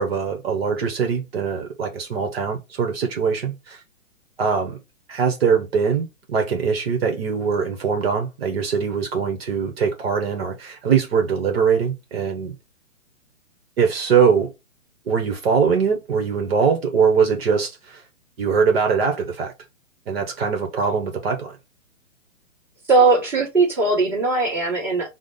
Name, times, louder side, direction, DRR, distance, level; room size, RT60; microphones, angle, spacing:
voice 1, 0.0-3.8 4.4-4.8 5.1-12.5 13.8-14.5 15.1-18.0 18.4-19.5 20.1-21.6, right 6 dB, 50° right, 0.9 m, -22 dB
voice 2, 22.9-25.1, right 3 dB, 5° right, 1.4 m, -19 dB
4.9 x 2.0 x 3.8 m
hypercardioid pair, 140°, 39 cm